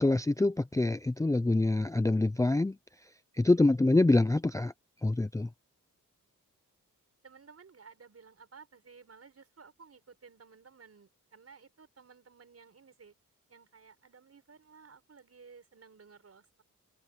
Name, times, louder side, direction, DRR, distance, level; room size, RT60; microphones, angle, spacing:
voice 1, 0.0-2.7 3.4-4.7 5.0-5.5, left 2 dB, 10° left, 0.5 m, -25 dB
voice 2, 7.2-13.1 13.5-16.6, right 5 dB, 45° right, 6.2 m, -56 dB
wide cardioid pair, 115°, 33 cm